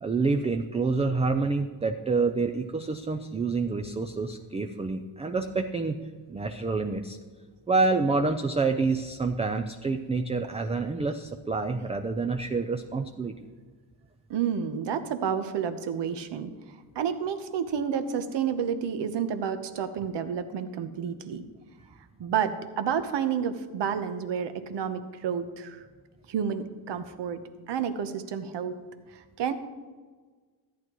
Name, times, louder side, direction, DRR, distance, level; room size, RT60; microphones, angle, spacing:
voice 1, 0.0-6.0 6.3-7.2 7.7-13.5, right 4 dB, 15° right, 6 dB, 0.3 m, -27 dB
voice 2, 14.3-21.4 22.2-25.8 26.3-28.8 29.1-29.5, right 7 dB, 65° right, 10 dB, 1.0 m, -30 dB
13.5 x 9.5 x 3.0 m, 1.4 s
cardioid pair, 115°, 46 cm